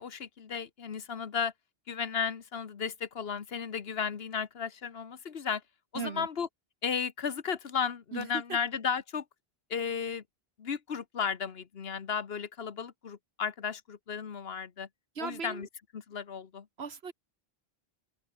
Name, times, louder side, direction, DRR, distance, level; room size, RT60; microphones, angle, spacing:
voice 1, 0.0-1.5 1.9-5.6 5.9-6.5 6.8-9.2 9.7-10.2 10.6-14.9 15.2-15.7 15.9-16.7, left 6 dB, 75° left, 1.4 m, -34 dB
voice 2, 6.0-6.3 8.1-8.6 15.2-15.7 16.8-17.1, right 5 dB, 80° right, 1.7 m, -38 dB
open air
omnidirectional pair, 1.0 m